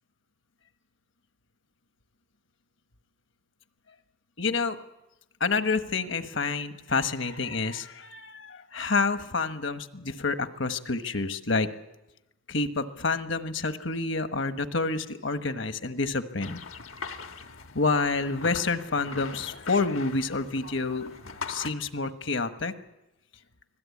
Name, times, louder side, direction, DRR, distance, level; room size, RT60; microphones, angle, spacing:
voice 1, 4.4-4.8 5.4-11.7 12.5-16.6 17.7-21.0 21.5-22.7, left 3 dB, 65° left, 9 dB, 1.3 m, -28 dB
sound 1, 16.4-21.7, left 4 dB, 80° left, 1.4 m, -41 dB
25.0 x 17.5 x 8.5 m, 0.96 s
head